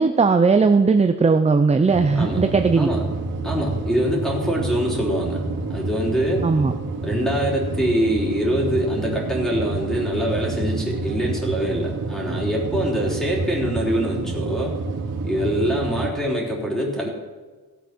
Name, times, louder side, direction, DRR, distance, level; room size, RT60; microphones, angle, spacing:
voice 1, 0.0-2.9 6.4-6.7, right 4 dB, 20° right, 7 dB, 0.5 m, -17 dB
sound 1, 1.9-16.1, right 3 dB, 60° right, 2.2 m, -28 dB
voice 2, 3.4-5.4 5.7-6.5 7.0-14.7 15.2-17.1, equal, ahead, -3 dB, 3.7 m, -24 dB
16.5 x 8.2 x 6.0 m, 1.3 s
wide cardioid pair, 135°, 34 cm